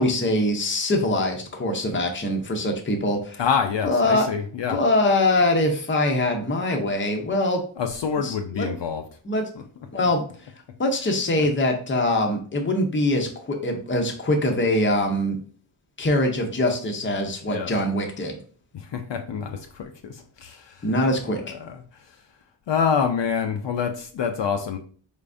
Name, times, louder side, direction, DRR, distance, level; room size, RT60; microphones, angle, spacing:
voice 1, 0.0-3.4 3.8-4.3 4.7-7.6 8.2-8.7 9.2-9.4 9.9-10.2 10.8-15.4 16.0-18.4 20.8-21.5, left 1 dB, 25° left, 3 dB, 0.6 m, -23 dB
voice 2, 3.4-4.8 7.8-9.0 11.4-11.5 17.4-17.7 18.7-20.9 21.5-22.0 22.7-24.8, left 6 dB, 65° left, 5 dB, 0.6 m, -27 dB
4.5 x 3.4 x 2.5 m, 0.43 s
wide cardioid pair, 150°, 48 cm